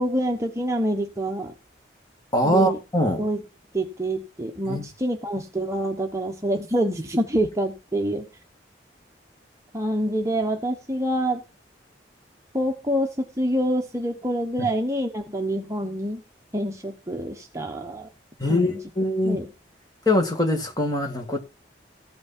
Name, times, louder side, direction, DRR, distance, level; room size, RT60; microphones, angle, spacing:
voice 1, 0.0-1.5 2.4-2.8 3.2-3.4 3.7-8.3 9.7-11.4 12.5-16.2 16.5-18.1 18.5-18.8 19.2-19.5, right 1 dB, 15° right, 1.0 m, -26 dB
voice 2, 2.3-3.2 4.6-4.8 14.6-14.7 18.4-19.5 20.1-21.4, left 1 dB, 20° left, 2.1 m, -23 dB
15.5 x 6.3 x 4.4 m
head